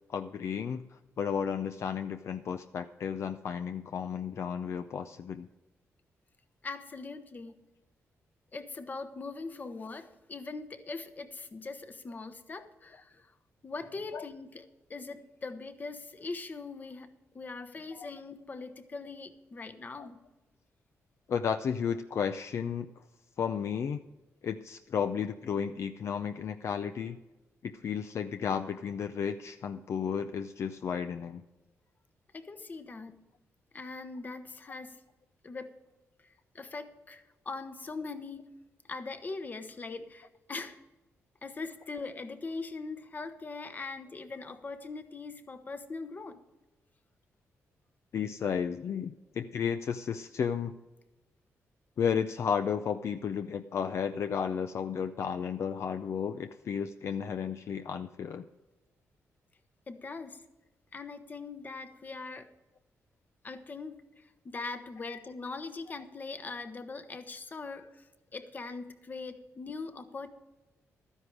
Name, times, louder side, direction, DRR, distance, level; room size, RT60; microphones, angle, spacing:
voice 1, 0.1-5.5 14.1-14.3 17.9-18.1 20.0-20.1 21.3-23.0 23.4-24.0 24.4-27.2 27.6-31.4 48.1-50.7 52.0-58.4 65.1-65.2, left 7 dB, 60° left, 8 dB, 0.5 m, -33 dB
voice 2, 6.6-7.6 8.5-13.3 13.6-14.6 14.9-17.1 17.3-20.2 32.3-33.2 33.7-35.0 35.4-35.8 36.5-38.5 38.9-40.8 41.4-46.4 59.9-60.4 60.9-62.5 63.4-68.0 68.3-70.3, left 3 dB, 35° left, 9 dB, 1.0 m, -41 dB
12.5 x 9.8 x 4.9 m, 1.1 s
cardioid pair, 105°, 5 cm